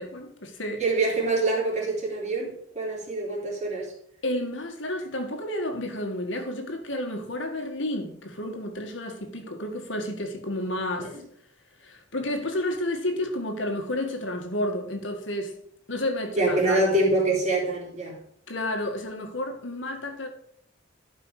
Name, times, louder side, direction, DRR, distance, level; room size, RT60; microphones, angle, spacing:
voice 1, 0.0-0.8 4.2-11.1 11.8-15.6 15.9-16.8 18.5-20.3, left 1 dB, 65° left, 1.9 m, -31 dB
voice 2, 0.8-3.9 11.1-11.2 16.4-18.2, right 2 dB, 35° right, 3.8 m, -25 dB
12.5 x 5.5 x 4.9 m
head